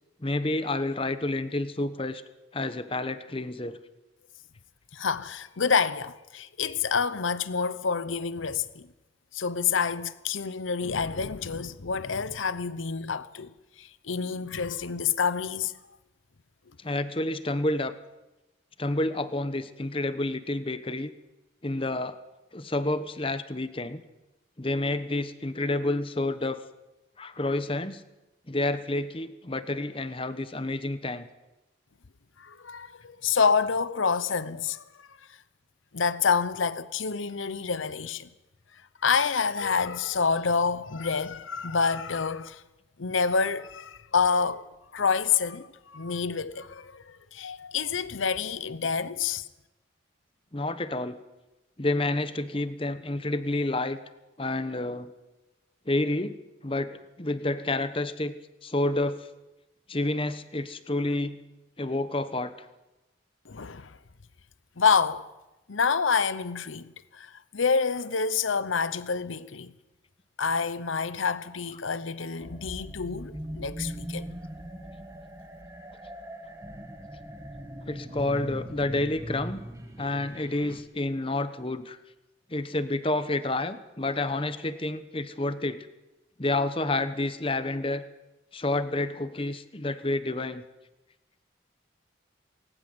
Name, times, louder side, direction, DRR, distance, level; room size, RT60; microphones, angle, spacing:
voice 1, 0.2-2.2 2.5-3.8 16.8-17.9 18.8-21.1 21.6-22.2 22.5-24.0 24.6-26.6 27.2-28.0 28.5-31.3 50.5-51.2 51.8-54.0 54.4-55.1 55.9-58.3 58.6-59.3 59.9-61.4 61.8-62.5 77.9-79.6 80.0-82.0 82.5-85.9 86.4-88.0 88.5-90.6, left 2 dB, 25° left, 1.1 m, -29 dB
voice 2, 4.9-8.9 9.3-13.5 13.8-15.7 32.4-35.1 35.9-38.3 39.0-42.6 43.0-44.7 44.9-49.5 63.5-64.0 64.8-65.2 65.7-69.7 70.4-74.3, left 5 dB, 85° left, 0.9 m, -28 dB
sound 1, 72.4-80.8, equal, 15° right, 1.7 m, -40 dB
19.5 x 19.0 x 7.9 m
head